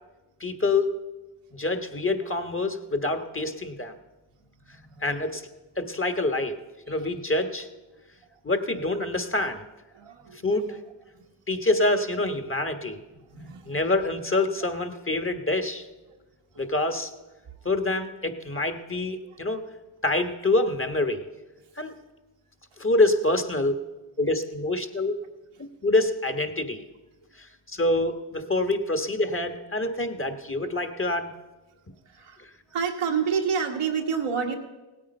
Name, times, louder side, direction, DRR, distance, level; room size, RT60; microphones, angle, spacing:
voice 1, 0.4-0.9 1.5-3.9 5.0-5.4 5.8-6.6 6.9-7.7 8.4-9.6 10.4-10.8 11.5-13.0 13.7-15.9 16.6-17.1 17.6-19.6 20.0-21.2 21.8-21.9 22.8-23.7 24.2-25.2 25.8-26.8 27.4-31.3, left 2 dB, 25° left, 8 dB, 1.4 m, -26 dB
voice 2, 4.7-5.0 6.9-7.1 8.7-8.8 9.9-10.8 11.1-11.3 13.2-14.1 16.1-16.2 16.5-16.6 17.5-17.6 19.2-19.4 32.1-34.5, right 6 dB, 85° right, 2 dB, 1.4 m, -30 dB
17.0 x 8.6 x 5.5 m, 1.1 s
cardioid pair, 40°, 50 cm